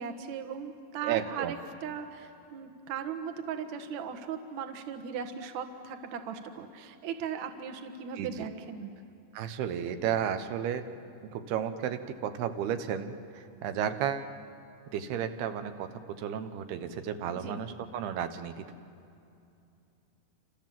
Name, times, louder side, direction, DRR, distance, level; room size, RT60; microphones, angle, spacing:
voice 1, 0.0-8.9 17.3-17.6, right 7 dB, 55° right, 6 dB, 2.2 m, -38 dB
voice 2, 1.0-1.5 8.2-8.3 9.3-10.8 11.3-14.3 14.9-15.9 16.2-18.6, right 9 dB, 75° right, 9 dB, 3.0 m, -33 dB
28.5 x 27.5 x 7.6 m, 2.6 s
omnidirectional pair, 4.9 m